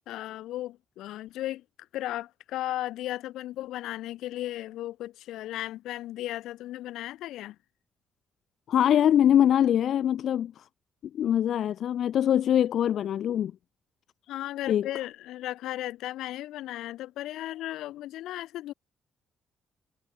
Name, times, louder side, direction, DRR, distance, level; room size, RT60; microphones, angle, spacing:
voice 1, 0.0-1.6 1.9-7.6 14.3-18.7, left 14 dB, 85° left, 1.2 m, -35 dB
voice 2, 8.7-10.6 11.1-13.5 14.7-14.9, left 10 dB, 70° left, 0.6 m, -23 dB
cardioid pair, 90°, 0 cm